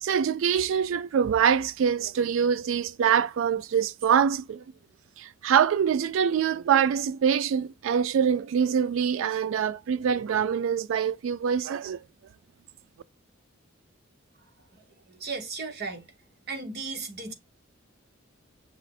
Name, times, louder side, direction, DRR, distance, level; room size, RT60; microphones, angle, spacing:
voice 1, 0.0-4.6 5.2-12.0, right 7 dB, 70° right, 0.3 m, -24 dB
voice 2, 14.7-16.1 16.5-17.3, right 4 dB, 50° right, 1.0 m, -36 dB
6.0 x 2.0 x 4.1 m
head